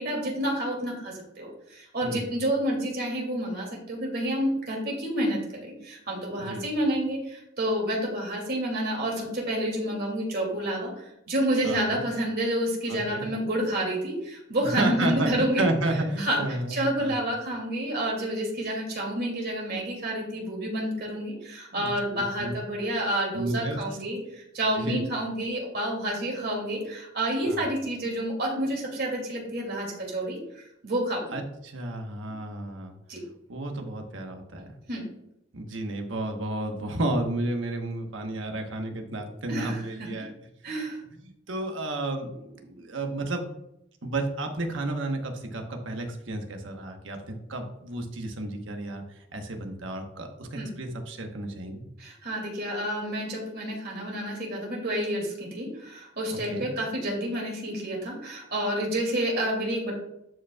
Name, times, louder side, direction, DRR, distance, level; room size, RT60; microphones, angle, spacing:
voice 1, 0.0-15.6 16.2-16.4 16.7-31.4 33.1-33.2 34.9-35.0 39.5-40.1 40.6-41.0 50.5-50.7 52.0-59.9, right 1 dB, 55° right, -1 dB, 2.5 m, -29 dB
voice 2, 11.6-12.0 12.9-13.3 14.8-17.1 21.7-22.5 23.3-23.8 24.8-25.0 27.4-27.6 31.3-32.9 33.5-34.7 35.5-40.3 41.2-43.4 44.0-49.0 49.3-51.8 56.3-56.7, right 2 dB, 80° right, 4 dB, 1.2 m, -32 dB
11.5 x 5.2 x 2.4 m, 0.81 s
head